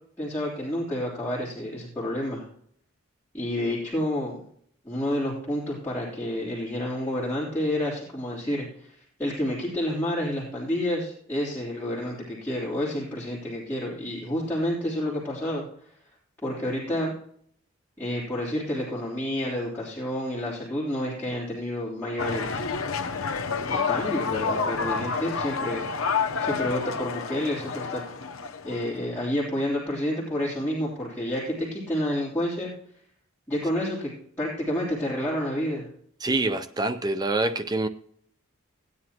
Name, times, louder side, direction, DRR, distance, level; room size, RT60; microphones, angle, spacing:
voice 1, 0.2-2.4 3.3-4.4 4.8-8.9 9.2-15.6 16.4-17.1 18.0-22.7 23.7-25.9 26.4-28.0 28.6-32.7 33.5-34.1 34.4-35.9, left 1 dB, 10° left, 3.3 m, -29 dB
sound 1, 22.2-29.0, left 5 dB, 80° left, 0.9 m, -29 dB
voice 2, 36.2-37.9, right 2 dB, 20° right, 0.5 m, -26 dB
17.0 x 9.6 x 2.9 m
head